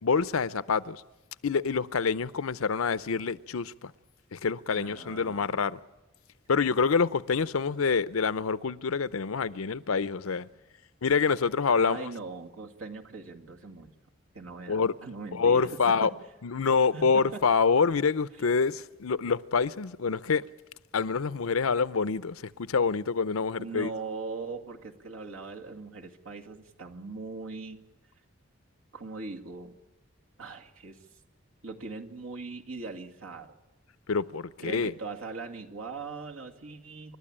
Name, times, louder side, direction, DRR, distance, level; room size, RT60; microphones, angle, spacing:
voice 1, 0.0-1.0 1.4-3.9 4.3-5.8 6.5-10.5 11.0-12.1 14.7-14.9 15.3-16.1 16.4-20.4 20.9-23.9 34.1-34.9, left 5 dB, 85° left, 0.6 m, -26 dB
voice 2, 4.7-5.7 11.8-13.9 14.3-16.1 16.9-17.4 23.6-27.8 28.9-29.7 30.4-31.0 31.6-33.5 34.6-37.2, right 4 dB, 85° right, 2.2 m, -40 dB
29.0 x 13.0 x 8.9 m
head